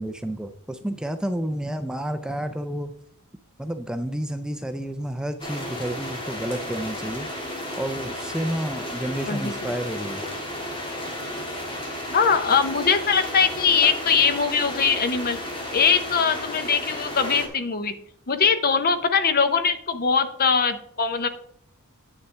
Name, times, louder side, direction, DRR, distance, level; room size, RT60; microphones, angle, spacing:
voice 1, 0.0-2.9 3.6-7.3 7.8-10.2, right 1 dB, 5° right, 7 dB, 0.4 m, -30 dB
sound 1, 5.4-17.5, left 1 dB, 25° left, 1.8 m, -33 dB
voice 2, 12.1-15.4 15.7-18.0 18.3-21.3, left 6 dB, 45° left, 10 dB, 0.8 m, -21 dB
9.7 x 7.7 x 3.3 m, 0.66 s
head